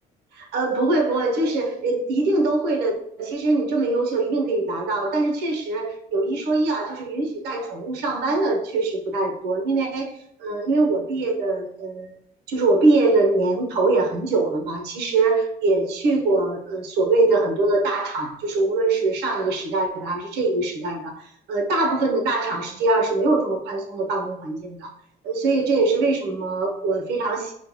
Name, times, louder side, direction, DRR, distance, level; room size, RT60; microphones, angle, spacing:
voice 1, 0.3-12.2 12.5-24.9 25.2-27.5, right 2 dB, 80° right, 2 dB, 1.0 m, -23 dB
4.3 x 2.3 x 3.1 m, 0.67 s
cardioid pair, 110°, 17 cm